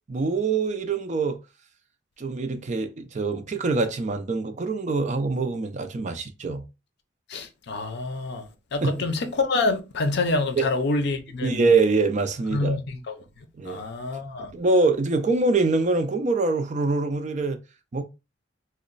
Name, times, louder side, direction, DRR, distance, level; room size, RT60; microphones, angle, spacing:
voice 1, 0.1-1.4 2.2-6.6 8.8-9.1 10.6-10.7 11.4-12.8 13.6-13.8 14.5-17.6 17.9-18.0, right 3 dB, 40° right, 0.4 m, -24 dB
voice 2, 7.3-11.7 12.5-13.2 13.6-14.5, left 3 dB, 60° left, 0.6 m, -27 dB
3.0 x 2.1 x 3.8 m
head